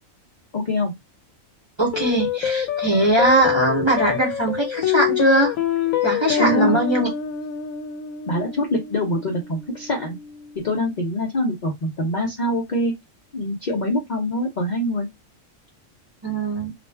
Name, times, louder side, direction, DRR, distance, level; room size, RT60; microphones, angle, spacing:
voice 1, 0.5-0.9 6.3-6.8 8.3-10.2 10.6-12.9 13.3-15.1, left 1 dB, 50° left, 0.6 m, -24 dB
voice 2, 1.8-5.5 6.0-7.1 16.2-16.7, right 1 dB, 25° right, 0.8 m, -20 dB
sound 1, 1.9-10.5, left 9 dB, 85° left, 1.0 m, -26 dB
2.5 x 2.1 x 3.3 m
omnidirectional pair, 1.4 m